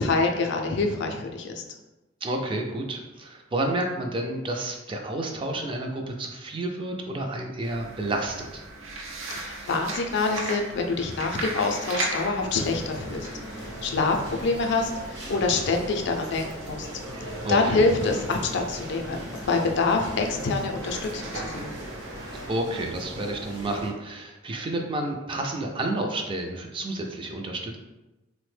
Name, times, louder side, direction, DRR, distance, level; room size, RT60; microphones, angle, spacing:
voice 1, 0.0-1.6 9.4-13.3 13.5-16.9 17.5-19.2 19.5-21.7, left 3 dB, 60° left, 3 dB, 0.4 m, -26 dB
voice 2, 2.2-8.6 17.4-17.8 22.5-27.8, right 1 dB, 25° right, 2 dB, 0.3 m, -30 dB
sound 1, 7.6-22.5, right 2 dB, 90° right, 0.5 m, -38 dB
sound 2, 12.5-23.9, equal, 70° right, 0.9 m, -38 dB
3.3 x 2.1 x 3.2 m, 1.0 s
head